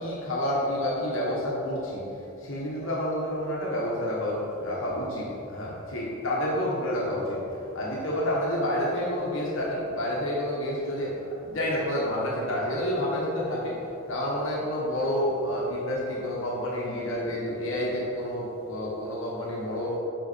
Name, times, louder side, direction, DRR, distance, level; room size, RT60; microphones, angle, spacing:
voice 1, 0.0-2.0 2.4-20.0, left 1 dB, 60° left, -5 dB, 1.3 m, -29 dB
5.9 x 5.6 x 4.3 m, 2.9 s
head